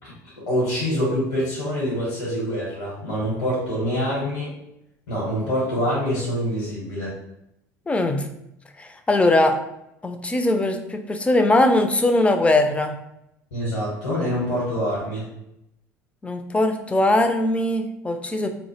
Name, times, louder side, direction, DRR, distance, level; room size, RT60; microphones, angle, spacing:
voice 1, 0.0-4.5 5.1-7.2 13.5-15.3, equal, 70° left, -7 dB, 0.9 m, -25 dB
voice 2, 7.9-8.3 8.8-9.6 10.0-12.9 16.2-18.5, left 1 dB, 15° left, 6 dB, 0.3 m, -20 dB
2.0 x 2.0 x 3.0 m, 0.82 s
figure-of-eight pair, 65°, 9 cm